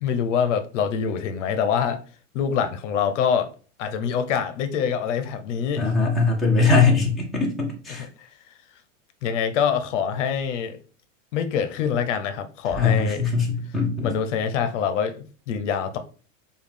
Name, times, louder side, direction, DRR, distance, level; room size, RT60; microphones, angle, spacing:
voice 1, 0.0-2.0 2.3-3.5 3.8-5.9 8.0-8.3 9.2-10.8 11.3-13.2 14.0-16.0, left 7 dB, 65° left, 0.7 m, -25 dB
voice 2, 5.8-8.1 12.8-14.1, left 4 dB, ahead, 0.6 m, -21 dB
5.1 x 2.4 x 3.3 m
supercardioid pair, 150°, 38 cm